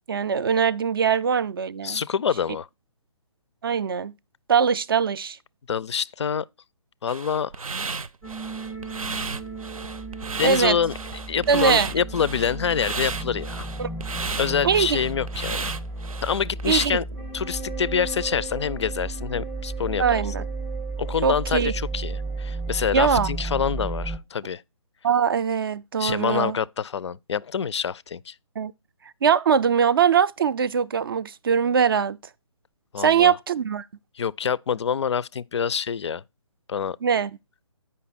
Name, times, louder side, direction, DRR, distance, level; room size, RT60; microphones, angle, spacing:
voice 1, 0.1-2.0 3.6-4.1 4.5-5.4 10.4-10.8 11.5-11.9 13.8-13.9 14.6-15.0 16.7-17.0 20.0-20.4 21.2-21.7 22.9-23.3 25.0-26.6 28.6-28.7 29.2-32.2 33.0-33.8 37.0-37.3, right 7 dB, 40° right, 0.4 m, -21 dB
voice 2, 1.8-2.7 5.7-6.5 7.0-7.7 10.4-10.9 11.3-13.7 14.4-15.7 16.2-17.1 17.3-20.2 21.0-24.6 26.0-28.3 32.9-33.3 34.2-36.2 36.7-37.0, left 7 dB, 55° left, 0.4 m, -26 dB
sound 1, 7.1-16.9, right 4 dB, 85° right, 0.7 m, -33 dB
sound 2, 8.2-24.2, right 3 dB, 5° right, 0.6 m, -33 dB
8.5 x 5.5 x 4.1 m
figure-of-eight pair, 150°, 17 cm